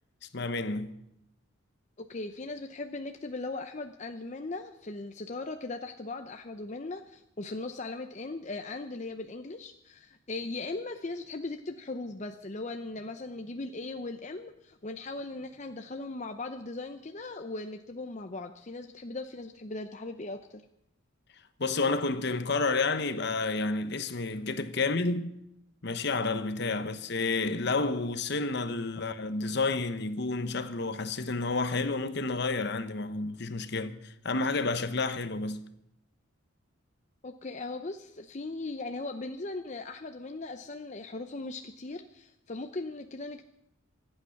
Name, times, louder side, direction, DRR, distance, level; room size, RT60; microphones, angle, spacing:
voice 1, 0.3-1.0 21.6-25.4 25.8-35.6, left 3 dB, 55° left, 1.0 m, -30 dB
voice 2, 2.0-20.6 29.0-29.1 37.2-43.4, left 2 dB, 35° left, 0.7 m, -38 dB
24.5 x 8.9 x 5.9 m
head